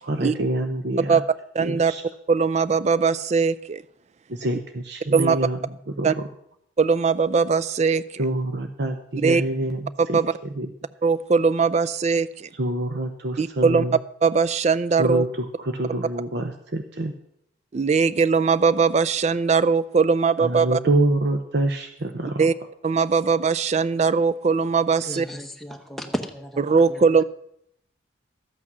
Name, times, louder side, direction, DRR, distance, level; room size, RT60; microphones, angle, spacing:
voice 1, 0.0-1.2 1.6-2.0 4.3-5.6 5.9-6.3 8.2-10.2 10.6-10.7 12.5-14.0 15.0-17.1 20.4-22.5, right 1 dB, 55° right, 7 dB, 0.7 m, -26 dB
voice 2, 1.5-1.9 2.3-3.8 5.1-5.4 6.0-6.1 6.8-8.0 9.2-9.4 10.1-10.3 11.0-12.5 13.4-13.8 14.2-15.2 17.7-20.8 22.4-22.5 22.8-25.3 26.7-27.2, right 5 dB, 35° right, 17 dB, 0.3 m, -20 dB
voice 3, 25.0-27.1, equal, ahead, 3 dB, 0.9 m, -34 dB
12.5 x 8.6 x 6.0 m, 0.75 s
head